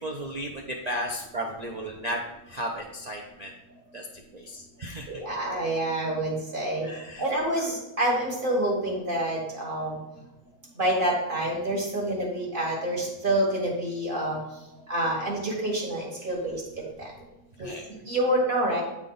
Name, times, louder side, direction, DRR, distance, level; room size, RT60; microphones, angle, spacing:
voice 1, 0.0-2.2 2.5-3.5 3.9-4.1 4.3-5.2 6.8-7.3 7.6-7.7 17.6-18.0, equal, 65° right, 0 dB, 0.4 m, -34 dB
voice 2, 5.1-6.8 7.2-7.7 8.0-9.9 10.8-14.4 14.9-16.6 18.1-18.8, right 1 dB, 40° right, -3 dB, 1.5 m, -27 dB
8.0 x 3.6 x 3.8 m, 0.93 s
omnidirectional pair, 1.5 m